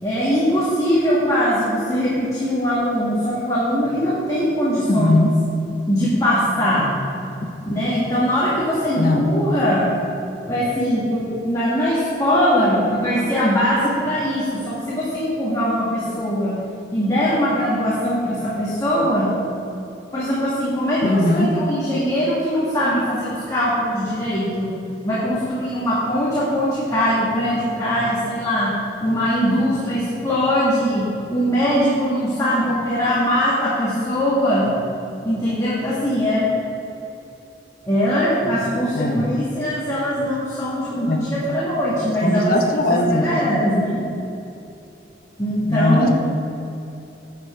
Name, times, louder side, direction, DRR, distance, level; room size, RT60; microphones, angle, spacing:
voice 1, 0.0-5.2 5.9-6.9 7.6-9.9 10.5-16.6 16.9-19.3 20.1-24.7 25.0-28.7 29.0-31.0 31.3-34.7 35.2-36.5 37.9-42.6 42.9-44.0 45.4-46.1, equal, 20° left, -9 dB, 1.9 m, -21 dB
voice 2, 4.9-5.3 9.0-9.3 21.0-21.5 38.9-39.3 41.1-41.2 42.2-43.3 45.7-46.1, left 2 dB, 50° left, 2 dB, 0.8 m, -19 dB
10.5 x 7.4 x 4.5 m, 2.8 s
head